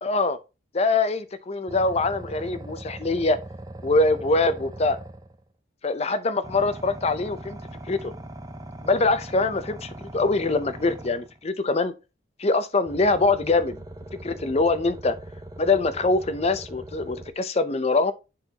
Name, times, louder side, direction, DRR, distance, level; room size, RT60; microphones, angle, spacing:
voice 1, 0.0-0.4 0.7-3.4 3.8-5.0 5.8-7.6 7.9-8.1 8.8-11.9 12.4-13.8 14.2-15.1 15.6-18.1, left 3 dB, 35° left, 0.6 m, -23 dB
sound 1, 1.7-5.4 6.4-11.4 12.9-17.3, right 1 dB, 20° right, 0.6 m, -40 dB
9.8 x 4.0 x 2.8 m
head